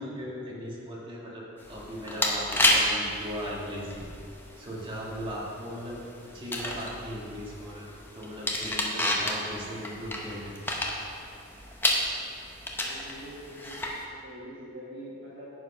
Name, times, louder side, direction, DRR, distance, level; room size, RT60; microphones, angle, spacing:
voice 1, 0.0-3.9 4.6-10.7, equal, 25° right, -5 dB, 1.7 m, -38 dB
sound 1, 1.6-14.0, left 1 dB, 10° left, 0.8 m, -31 dB
voice 2, 12.7-15.5, equal, 50° right, -9 dB, 1.6 m, -44 dB
9.8 x 5.0 x 5.4 m, 2.5 s
head